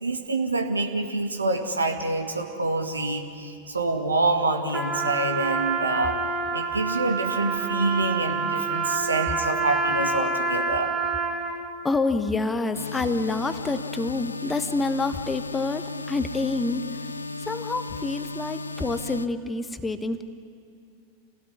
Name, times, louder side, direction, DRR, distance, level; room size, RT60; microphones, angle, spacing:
voice 1, 0.0-6.2 6.5-10.9, right 2 dB, 80° right, 4 dB, 2.2 m, -26 dB
Trumpet, 4.7-11.7, right 4 dB, 15° right, 2.9 m, -27 dB
voice 2, 11.8-17.0 17.4-20.2, left 3 dB, 10° left, 9 dB, 1.3 m, -27 dB
sound 1, 12.7-19.3, left 3 dB, 75° left, 0.7 m, -35 dB
28.5 x 17.0 x 9.7 m, 2.5 s
figure-of-eight pair, 90°, 0 cm